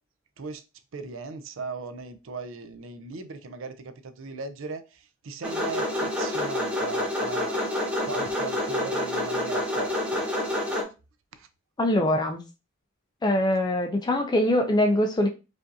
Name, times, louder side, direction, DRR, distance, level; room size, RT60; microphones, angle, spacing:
voice 1, 0.9-4.8 5.2-7.6 8.0-10.2 11.4-11.5, right 4 dB, 65° right, 0.5 m, -37 dB
sound 1, 5.4-10.8, left 1 dB, 5° right, 0.8 m, -28 dB
voice 2, 11.8-12.4 13.2-15.3, left 1 dB, 20° left, 0.4 m, -23 dB
4.9 x 2.5 x 2.7 m
head